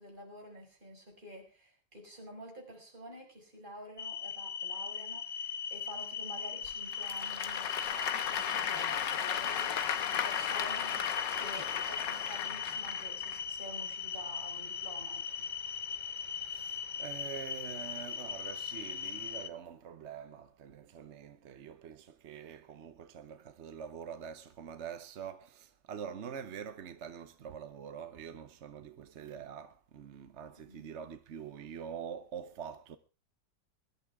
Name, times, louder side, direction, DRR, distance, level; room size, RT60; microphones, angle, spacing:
voice 1, 0.0-15.2 30.6-30.9, equal, 25° right, 5.4 m, -49 dB
sound 1, 4.0-19.5, left 7 dB, 40° left, 0.7 m, -39 dB
Applause / Crowd, 6.6-13.4, left 9 dB, 85° left, 1.7 m, -35 dB
voice 2, 16.1-33.0, right 7 dB, 50° right, 0.9 m, -45 dB
22.0 x 12.0 x 3.6 m
omnidirectional pair, 1.9 m